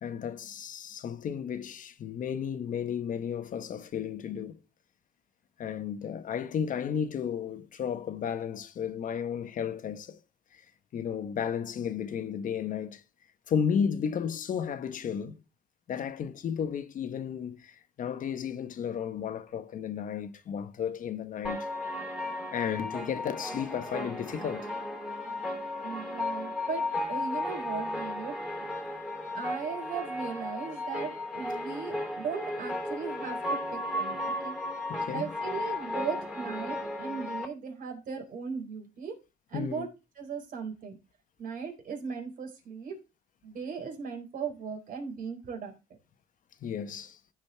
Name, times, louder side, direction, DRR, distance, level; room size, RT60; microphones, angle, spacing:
voice 1, 0.0-4.6 5.6-10.2 10.5-10.6 10.9-13.0 13.5-15.4 15.9-21.7 22.5-24.7 34.9-35.3 39.5-39.9 46.6-47.2, left 7 dB, 50° left, 1.3 m, -33 dB
sound 1, 21.4-37.5, left 1 dB, 5° right, 3.0 m, -35 dB
voice 2, 25.8-26.8 27.1-28.3 29.3-34.2 34.4-34.6 35.1-39.1 39.5-39.9 40.2-41.0 41.4-43.0 43.4-45.7, right 6 dB, 55° right, 4.3 m, -37 dB
15.0 x 5.2 x 3.5 m
cardioid pair, 110°, 17 cm